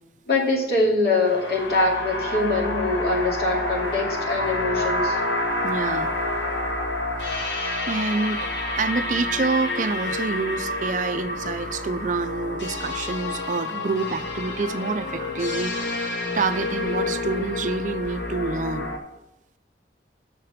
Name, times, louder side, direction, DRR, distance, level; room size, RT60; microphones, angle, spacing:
voice 1, 0.3-5.2, left 2 dB, 55° left, -3 dB, 2.6 m, -23 dB
Modal Synthscape, 1.2-19.0, left 2 dB, 80° left, 1.6 m, -28 dB
voice 2, 5.6-6.1 7.9-8.5 8.8-18.9, right 4 dB, 45° right, 11 dB, 0.4 m, -27 dB
6.7 x 6.6 x 5.7 m, 0.93 s
head